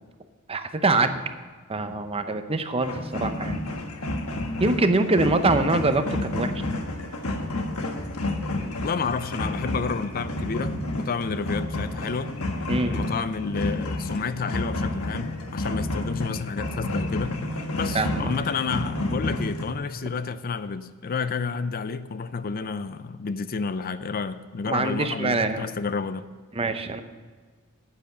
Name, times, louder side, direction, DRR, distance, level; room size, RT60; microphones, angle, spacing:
voice 1, 0.5-1.1 1.7-3.6 4.6-6.5 12.7-13.1 17.9-18.3 24.7-25.7 26.6-27.0, right 3 dB, 25° right, 9 dB, 0.8 m, -24 dB
sound 1, 2.8-19.7, left 1 dB, 70° left, 1.3 m, -30 dB
voice 2, 8.8-12.3 12.8-17.4 17.7-26.3, left 5 dB, 40° left, 13 dB, 0.5 m, -30 dB
10.0 x 9.5 x 6.6 m, 1.5 s
head